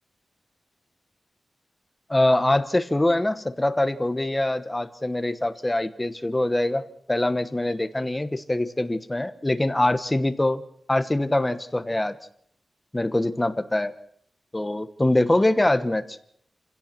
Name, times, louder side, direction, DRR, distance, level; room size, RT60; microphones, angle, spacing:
voice 1, 2.1-10.6 10.9-12.2 12.9-13.9 14.5-16.2, left 1 dB, 15° left, 11 dB, 1.2 m, -24 dB
28.5 x 16.5 x 6.0 m, 0.66 s
wide cardioid pair, 155°, 0 cm